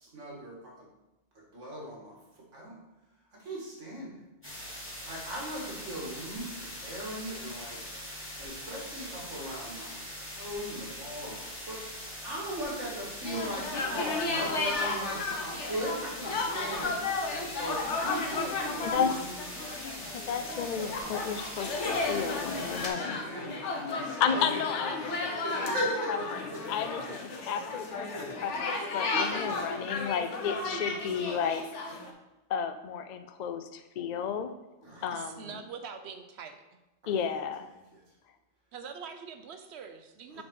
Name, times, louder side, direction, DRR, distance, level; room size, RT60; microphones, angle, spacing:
voice 1, 0.0-0.9 1.5-2.1 2.5-2.7 3.4-4.2 5.1-7.8 8.4-10.0 10.3-11.8 12.2-16.9 17.3-19.4 22.6-24.5 25.4-26.1 26.5-26.6 28.1-28.2 29.1-29.6 30.5-30.6 34.8-35.2 40.3-40.4, equal, 85° right, -4 dB, 2.3 m, -38 dB
sound 1, 4.4-22.9, equal, 10° left, 1.7 m, -42 dB
sound 2, 13.2-32.1, left 3 dB, 75° left, 1.3 m, -34 dB
voice 2, 18.8-19.2 20.1-23.2 24.2-25.7 26.1-26.4 26.7-31.6 32.5-34.5 35.0-35.5 37.1-37.6 40.4-40.5, left 7 dB, 55° left, 9 dB, 0.5 m, -32 dB
voice 3, 35.1-36.6 38.7-40.4, right 6 dB, 65° right, 7 dB, 0.9 m, -43 dB
6.8 x 4.1 x 5.4 m, 1.0 s
omnidirectional pair, 1.2 m